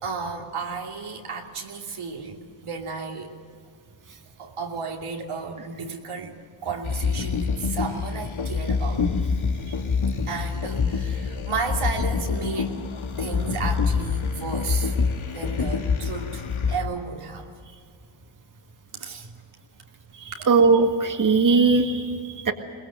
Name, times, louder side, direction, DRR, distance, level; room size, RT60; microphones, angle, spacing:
voice 1, 0.0-3.3 4.4-6.3 6.6-9.1 10.3-12.9 13.2-14.9 15.3-17.5 18.9-19.3 20.4-20.5, right 5 dB, 90° right, 0 dB, 2.9 m, -33 dB
sound 1, 6.8-16.8, left 5 dB, 70° left, 2.0 m, -26 dB
voice 2, 20.5-22.5, right 4 dB, 40° right, 4 dB, 1.9 m, -19 dB
22.5 x 20.0 x 7.8 m, 2.3 s
cardioid pair, 85°, 50 cm